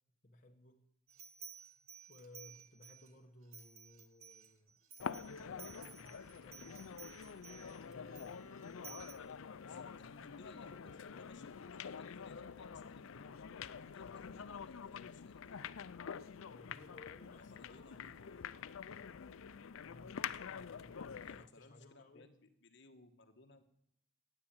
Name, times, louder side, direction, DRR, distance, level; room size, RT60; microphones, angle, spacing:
voice 1, 0.2-0.8 2.1-4.8 5.4-7.0 7.7-9.0 9.7-10.5 16.5-18.3 19.8-22.3, left 1 dB, 35° left, 1.1 m, -60 dB
sound 1, 1.1-3.1 3.5-9.1, right 7 dB, 80° right, 1.6 m, -56 dB
sound 2, 5.0-21.5, left 7 dB, 70° left, 0.5 m, -47 dB
Wind instrument woodwind instrument, 7.0-14.2, left 4 dB, 90° left, 1.0 m, -59 dB
voice 2, 9.7-13.3 13.8-15.7 17.3-18.5 21.2-23.6, left 2 dB, 55° left, 1.3 m, -61 dB
15.5 x 8.7 x 8.9 m
head